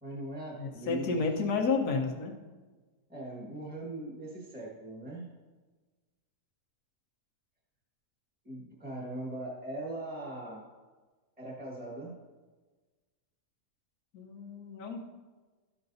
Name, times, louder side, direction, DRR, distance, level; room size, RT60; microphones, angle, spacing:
voice 1, 0.0-1.2 3.1-5.3 8.4-10.6 11.4-12.1, right 1 dB, 5° right, -3 dB, 1.4 m, -40 dB
voice 2, 0.6-2.3 14.1-15.0, left 4 dB, 80° left, 1 dB, 1.5 m, -31 dB
12.5 x 6.8 x 2.7 m, 1.3 s
omnidirectional pair, 1.6 m